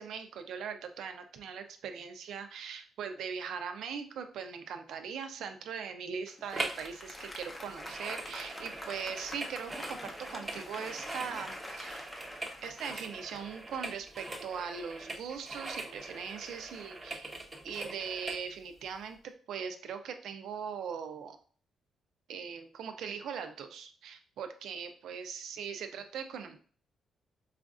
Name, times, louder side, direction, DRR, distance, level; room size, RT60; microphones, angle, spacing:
voice 1, 0.0-12.1 12.6-17.3 17.6-21.4 22.3-26.6, right 6 dB, 80° right, 7 dB, 0.5 m, -40 dB
Applause, 6.3-13.9, left 1 dB, 15° left, 0.6 m, -45 dB
sound 1, 6.5-6.9 7.1-18.4 19.0-19.1, right 2 dB, 20° right, 0.7 m, -42 dB
4.9 x 2.4 x 2.4 m, 0.44 s
cardioid pair, 120°, 0 cm